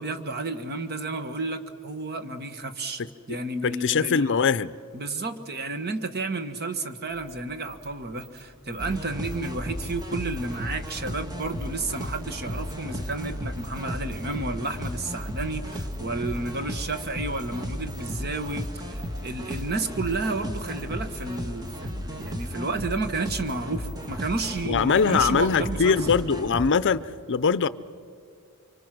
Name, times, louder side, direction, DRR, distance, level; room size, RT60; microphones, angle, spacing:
voice 1, 0.0-3.0 3.3-4.3 4.9-26.0, right 3 dB, 45° right, 1.5 m, -31 dB
voice 2, 3.6-4.8 24.6-27.0 27.3-27.7, left 5 dB, 55° left, 0.6 m, -22 dB
sound 1, 7.1-25.9, right 2 dB, 80° right, 3.4 m, -52 dB
sound 2, 8.8-26.7, equal, 20° right, 1.6 m, -34 dB
30.0 x 24.5 x 6.1 m
head